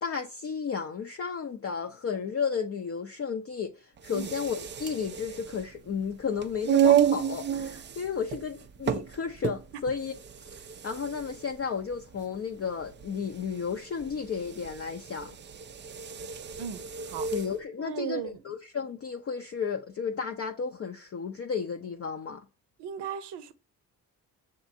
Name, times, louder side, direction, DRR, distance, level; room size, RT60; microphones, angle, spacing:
voice 1, 0.0-10.1 10.6-15.4 17.3-22.4, left 6 dB, 35° left, 0.5 m, -33 dB
sound 1, 4.0-17.5, right 9 dB, 30° right, 0.3 m, -31 dB
voice 2, 16.6-17.3 17.8-18.4 22.8-23.5, right 8 dB, 65° right, 0.7 m, -36 dB
6.0 x 2.5 x 2.6 m
hypercardioid pair, 45°, 45 cm